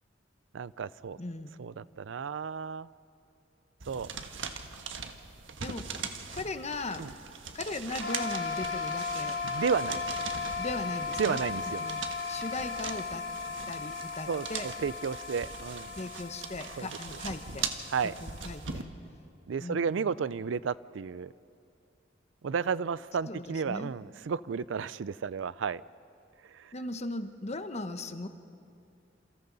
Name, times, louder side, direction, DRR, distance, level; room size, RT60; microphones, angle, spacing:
voice 1, 0.5-1.2 1.6-2.9 3.9-4.1 7.0-7.1 9.4-10.0 11.2-11.8 14.3-15.9 16.8-16.9 17.9-18.1 19.5-21.3 22.4-25.8 26.5-26.7, right 6 dB, 75° right, 18 dB, 0.4 m, -32 dB
voice 2, 1.2-1.5 5.6-7.1 7.5-9.4 10.6-11.4 11.8-12.0 12.3-13.3 13.7-14.7 16.0-17.7 18.2-18.9 19.6-20.0 23.3-23.9 26.7-28.3, left 2 dB, 35° left, 9 dB, 1.0 m, -38 dB
sound 1, 3.8-18.8, right 5 dB, 90° right, 1.4 m, -41 dB
sound 2, 8.0-18.6, left 4 dB, 80° left, 3.6 m, -36 dB
28.5 x 28.0 x 4.0 m, 2.5 s
head